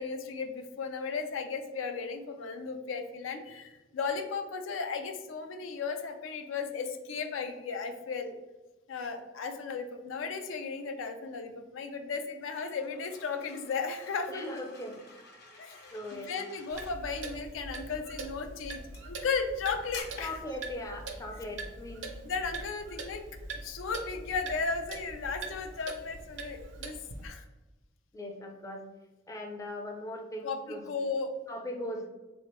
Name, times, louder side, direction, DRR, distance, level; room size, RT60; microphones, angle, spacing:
voice 1, 0.0-8.3 8.9-14.5 15.6-20.4 22.2-23.2 23.6-27.0 27.2-27.4 30.4-31.3, left 5 dB, 85° left, 6 dB, 0.4 m, -35 dB
sound 1, 12.4-17.0 17.9-18.2 18.9-19.4 19.9-20.0, left 3 dB, 55° left, 0.8 m, -51 dB
voice 2, 14.3-15.0 15.9-16.3 20.2-22.1 28.1-28.8 29.3-30.8 31.5-32.1, left 1 dB, 15° left, 2 dB, 0.4 m, -39 dB
Clock, 16.7-27.3, right 3 dB, 75° right, 0.6 m, -43 dB
3.6 x 3.1 x 2.9 m, 1.1 s
head